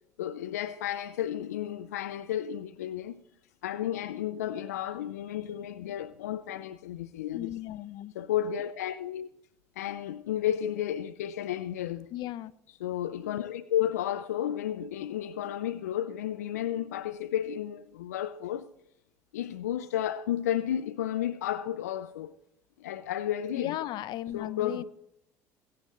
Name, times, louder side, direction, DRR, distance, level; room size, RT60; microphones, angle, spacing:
voice 1, 0.2-3.2 3.6-7.5 8.1-9.3 9.8-12.1 12.8-18.7 19.3-22.3 22.8-23.8 24.3-24.8, left 11 dB, 90° left, 0.6 m, -32 dB
voice 2, 7.3-8.1 12.1-12.5 23.5-24.8, left 14 dB, 60° left, 0.8 m, -36 dB
23.5 x 8.7 x 3.9 m
hypercardioid pair, 80°, 8 cm